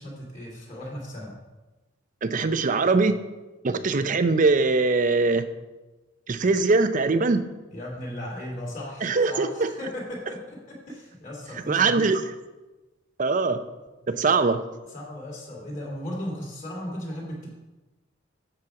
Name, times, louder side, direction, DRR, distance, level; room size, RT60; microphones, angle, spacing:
voice 1, 0.0-1.4 7.7-12.0 14.1-14.3 14.9-17.5, left 1 dB, 40° left, -3 dB, 2.3 m, -36 dB
voice 2, 2.2-3.2 3.6-5.5 6.3-7.4 9.0-9.7 11.7-12.2 13.2-13.6 14.1-14.6, right 3 dB, 40° right, 11 dB, 0.5 m, -22 dB
7.7 x 7.1 x 4.8 m, 1.1 s
head